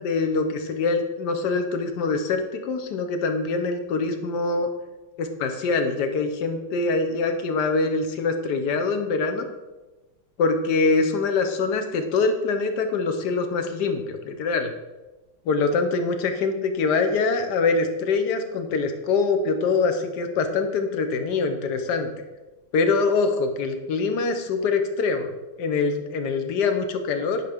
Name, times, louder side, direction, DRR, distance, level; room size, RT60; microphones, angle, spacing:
voice 1, 0.0-4.7 5.2-9.5 10.4-14.7 15.5-22.1 22.7-25.3 25.6-27.4, left 4 dB, 65° left, 6 dB, 1.2 m, -24 dB
9.3 x 5.2 x 3.4 m, 1.1 s
omnidirectional pair, 2.1 m